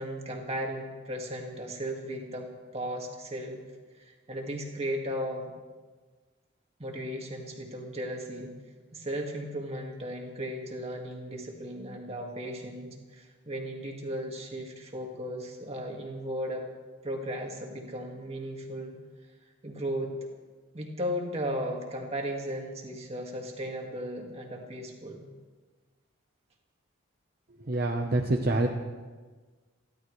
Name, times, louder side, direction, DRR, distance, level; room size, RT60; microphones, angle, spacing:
voice 1, 0.0-3.6 4.0-5.5 6.8-8.5 8.9-16.7 17.0-18.9 19.6-20.3 20.7-25.3, equal, 30° right, 1 dB, 2.0 m, -36 dB
voice 2, 27.6-28.7, right 2 dB, 45° right, 2 dB, 0.9 m, -26 dB
29.5 x 12.0 x 3.2 m, 1.4 s
head